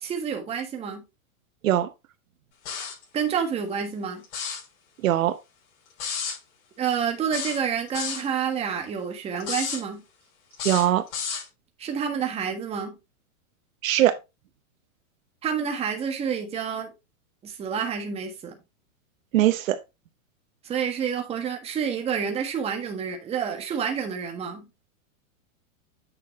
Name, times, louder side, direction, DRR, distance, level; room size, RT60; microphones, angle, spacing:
voice 1, 0.0-1.0 3.1-4.2 6.8-10.0 11.8-12.9 15.4-16.9 17.4-18.6 20.6-24.7, right 7 dB, 15° right, 1.5 m, -28 dB
sound 1, 2.7-3.0 4.2-4.7 6.0-6.4 7.3-8.3 9.4-9.8 10.5-11.5, left 6 dB, 55° left, 5.9 m, -31 dB
voice 2, 5.0-5.4 10.6-11.0 13.8-14.2 19.3-19.8, right 13 dB, 70° right, 0.9 m, -21 dB
9.2 x 5.8 x 3.1 m
supercardioid pair, 165°, 42 cm